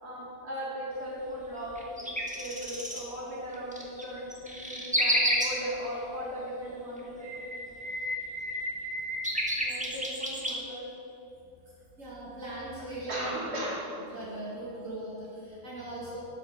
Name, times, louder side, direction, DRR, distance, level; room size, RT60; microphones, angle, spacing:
voice 1, 0.0-7.3 9.6-10.9 13.1-13.8, equal, 55° right, -5 dB, 2.8 m, -37 dB
sound 1, 1.7-3.0 3.5-5.5 7.0-10.5, equal, 5° right, 1.5 m, -30 dB
voice 2, 12.0-13.7 14.1-16.2, right 1 dB, 75° right, -6 dB, 2.7 m, -39 dB
9.7 x 9.6 x 6.9 m, 2.9 s
omnidirectional pair, 1.3 m